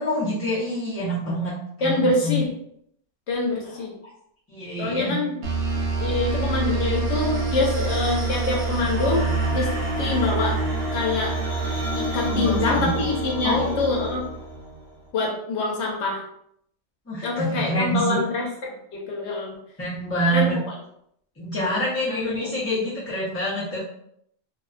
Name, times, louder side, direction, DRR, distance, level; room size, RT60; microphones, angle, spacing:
voice 1, 0.0-1.5 1.8-2.4 3.6-3.8 4.5-5.2 12.3-12.9 13.4-13.9 17.1-18.2 19.8-20.6 21.4-23.8, equal, 15° left, -10 dB, 0.5 m, -26 dB
voice 2, 1.8-2.5 3.3-3.9 4.8-5.4 5.9-9.2 9.5-9.7 10.0-10.5 10.9-11.3 12.0-14.2 15.1-16.2 17.2-19.6 20.3-20.5 22.1-22.6, left 3 dB, 80° left, -2 dB, 0.9 m, -25 dB
sound 1, 5.4-14.9, right 3 dB, 70° right, 0.8 m, -26 dB
2.5 x 2.1 x 2.4 m, 0.71 s
omnidirectional pair, 1.1 m